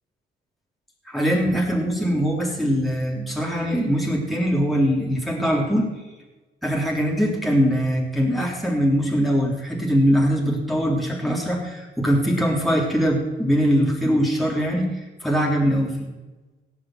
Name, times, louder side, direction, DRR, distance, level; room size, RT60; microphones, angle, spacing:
voice 1, 1.1-5.9 6.6-16.1, equal, ahead, -2 dB, 3.4 m, -22 dB
17.5 x 7.8 x 7.9 m, 1.2 s
cardioid pair, 90°, 20 cm